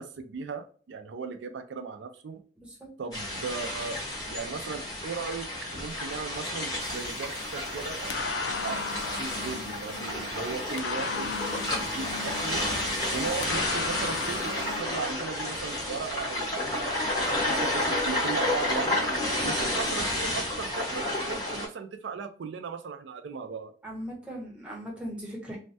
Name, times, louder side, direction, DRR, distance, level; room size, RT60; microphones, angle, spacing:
voice 1, 0.0-2.4 3.0-4.0 4.3-5.5 5.8-8.1 8.5-8.8 9.2-11.3 11.8-12.6 13.1-19.0 19.4-23.7, right 5 dB, 85° right, 8 dB, 0.4 m, -37 dB
voice 2, 2.6-2.9 13.1-13.3 23.8-25.6, equal, 5° right, -3 dB, 0.9 m, -39 dB
sound 1, 3.1-21.7, left 1 dB, 20° left, 1.1 m, -31 dB
sound 2, 6.8-14.8, left 5 dB, 80° left, 0.4 m, -37 dB
3.1 x 2.2 x 2.6 m, 0.42 s
head